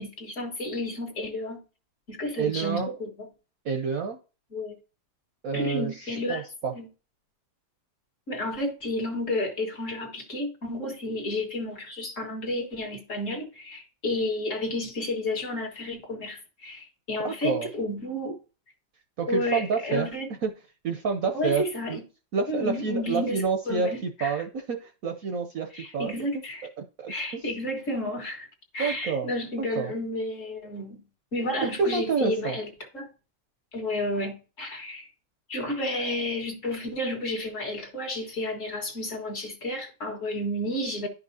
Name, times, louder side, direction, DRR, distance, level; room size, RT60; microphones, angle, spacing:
voice 1, 0.0-1.6 2.1-3.3 4.5-4.7 5.5-6.4 6.7-6.9 8.3-18.4 19.3-20.3 21.3-22.0 22.5-24.3 25.7-26.7 27.1-28.5 28.7-31.0 31.3-32.7 32.9-33.1 33.7-35.1 35.5-41.1, left 1 dB, 45° left, 1.8 m, -31 dB
voice 2, 2.4-2.9 3.6-4.2 5.4-6.7 17.2-17.7 19.2-20.1 20.4-20.5 20.8-22.0 22.3-26.1 27.0-27.4 28.8-29.3 29.6-29.9 31.8-32.6, right 5 dB, 60° right, 1.0 m, -28 dB
11.0 x 5.5 x 2.7 m
omnidirectional pair, 2.0 m